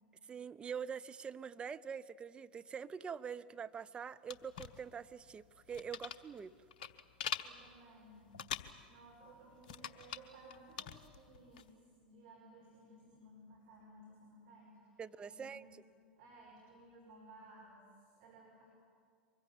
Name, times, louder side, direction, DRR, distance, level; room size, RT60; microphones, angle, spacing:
voice 1, 0.3-6.6 15.0-15.7, right 7 dB, 20° right, 11 dB, 0.6 m, -45 dB
sound 1, 4.3-11.7, left 8 dB, 60° left, 0.9 m, -45 dB
voice 2, 7.4-8.3 8.9-11.7 12.0-15.7 16.2-18.6, right 2 dB, 50° right, -4 dB, 6.1 m, -58 dB
24.0 x 21.5 x 8.7 m, 2.2 s
figure-of-eight pair, 85°, 5 cm